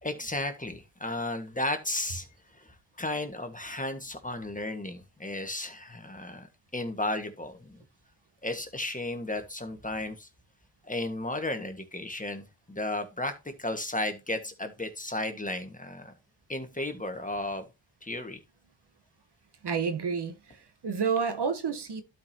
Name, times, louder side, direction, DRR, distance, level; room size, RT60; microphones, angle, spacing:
voice 1, 0.0-2.3 2.6-6.5 6.7-7.8 8.4-10.3 10.8-13.3 13.6-16.1 16.5-17.7 18.0-18.4, left 2 dB, 15° left, 1.6 m, -34 dB
voice 2, 19.6-22.0, right 6 dB, 60° right, 1.3 m, -30 dB
12.0 x 5.3 x 2.9 m
cardioid pair, 70°, 46 cm